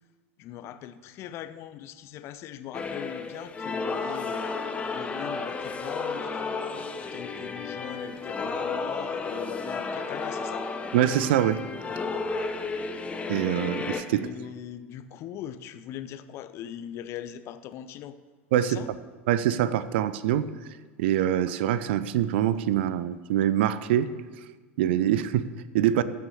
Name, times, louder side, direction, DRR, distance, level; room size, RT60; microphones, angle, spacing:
voice 1, 0.4-4.5 4.9-6.4 6.7-10.7 14.1-18.2 18.6-18.9, left 10 dB, 40° left, 12 dB, 0.6 m, -40 dB
sound 1, 2.7-14.0, left 4 dB, 15° left, 0.9 m, -33 dB
voice 2, 10.9-11.6 13.3-14.3 18.5-18.8 19.3-20.5 21.0-24.1 24.8-26.0, right 11 dB, 55° right, 15 dB, 0.5 m, -24 dB
14.0 x 5.9 x 6.8 m, 1.4 s
figure-of-eight pair, 80°, 7 cm